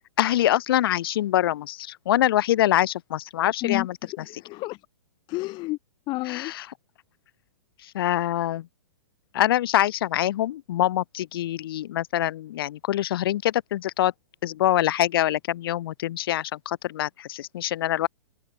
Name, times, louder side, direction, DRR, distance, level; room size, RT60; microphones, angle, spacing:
voice 1, 0.2-4.0 6.3-6.6 7.8-8.7 9.3-14.1 14.4-18.1, left 13 dB, 60° left, 1.1 m, -24 dB
voice 2, 3.6-4.8 5.3-5.8 6.1-6.5, left 21 dB, 35° left, 2.8 m, -31 dB
hypercardioid pair, 135°, 14 cm